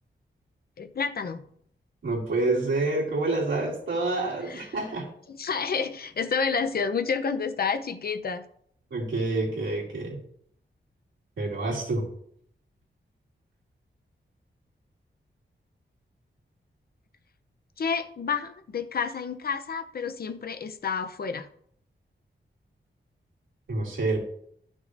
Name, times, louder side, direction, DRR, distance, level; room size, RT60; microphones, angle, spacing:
voice 1, 0.8-1.4 4.4-4.8 5.3-8.4 17.8-21.5, left 5 dB, 55° left, 9 dB, 0.6 m, -29 dB
voice 2, 2.0-5.1 8.9-10.2 11.4-12.0 23.7-24.2, right 2 dB, 85° right, -4 dB, 2.6 m, -27 dB
13.0 x 6.2 x 2.6 m, 0.66 s
wide cardioid pair, 155°, 19 cm